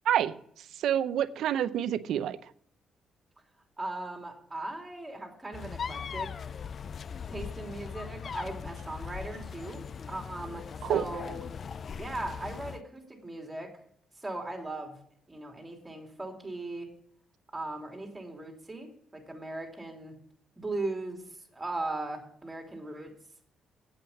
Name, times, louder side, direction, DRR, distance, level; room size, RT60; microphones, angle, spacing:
voice 1, 0.8-2.4 10.8-11.0, right 10 dB, 75° right, 0.6 m, -27 dB
voice 2, 3.8-6.5 7.3-11.4 11.9-13.7 14.2-14.9 15.3-16.9 17.5-20.2 20.6-23.1, right 2 dB, 15° right, 3.1 m, -38 dB
sound 1, 5.5-12.8, left 6 dB, 50° left, 0.4 m, -40 dB
8.5 x 8.2 x 7.2 m
cardioid pair, 90°, 0 cm